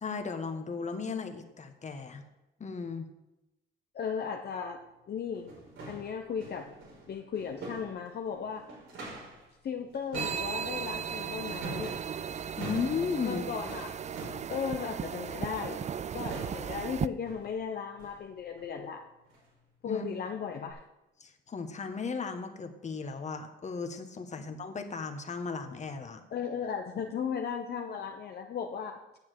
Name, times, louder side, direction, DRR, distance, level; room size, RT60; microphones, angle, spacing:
voice 1, 0.0-2.2 2.6-3.1 12.6-13.4 19.8-20.1 21.2-26.2, left 5 dB, 35° left, 7 dB, 1.4 m, -35 dB
voice 2, 3.9-4.8 5.1-5.5 5.9-6.7 7.1-8.6 9.6-11.9 13.2-14.0 14.5-19.0 19.8-20.8 24.4-24.5 26.3-29.0, left 7 dB, 55° left, 4 dB, 0.9 m, -36 dB
sound 1, 4.6-4.7 5.2-9.5 9.7-14.6 15.7-16.0 16.2-16.9 17.2-17.5 18.0-18.2 18.6-18.8 19.2-19.5 20.0-20.1 20.7-20.8, right 2 dB, 85° right, 5.0 m, -45 dB
sound 2, 10.1-17.1, right 8 dB, 35° right, 0.4 m, -36 dB
8.8 x 7.2 x 7.9 m, 0.95 s
cardioid pair, 90°, 20 cm